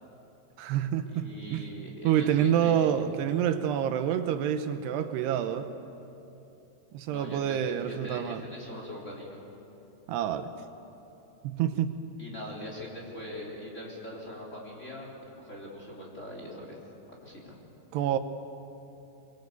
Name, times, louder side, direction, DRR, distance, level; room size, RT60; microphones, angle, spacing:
voice 1, 0.6-1.7 2.0-5.7 6.9-8.4 10.1-10.5 11.4-11.9 17.9-18.2, right 9 dB, 80° right, 9 dB, 3.0 m, -27 dB
voice 2, 1.1-2.9 7.1-9.4 12.2-15.1 15.3-16.8 17.2-17.6, left 1 dB, 15° left, -3 dB, 4.0 m, -41 dB
23.0 x 23.0 x 8.3 m, 3.0 s
omnidirectional pair, 4.8 m